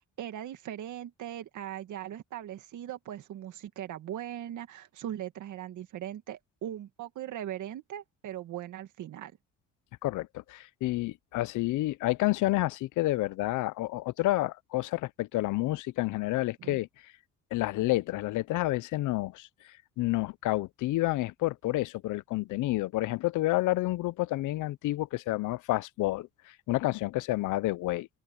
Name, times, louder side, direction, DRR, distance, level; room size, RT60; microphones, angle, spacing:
voice 1, 0.0-9.3 16.6-16.8, right 11 dB, 75° right, 2.0 m, -39 dB
voice 2, 10.0-16.9 17.5-19.5 20.0-28.1, left 18 dB, 85° left, 0.6 m, -29 dB
open air
cardioid pair, 90°, 30 cm